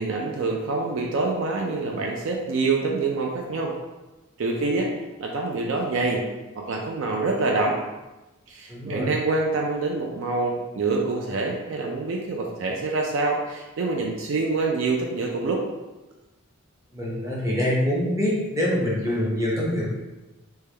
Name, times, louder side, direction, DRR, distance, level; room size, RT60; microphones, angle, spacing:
voice 1, 0.0-3.8 4.4-4.9 5.2-6.2 6.6-7.8 8.5-15.6, right 3 dB, 60° right, 0 dB, 0.3 m, -26 dB
voice 2, 8.7-9.1 16.9-19.9, left 1 dB, 15° right, -6 dB, 0.7 m, -25 dB
3.3 x 2.2 x 3.3 m, 1.1 s
head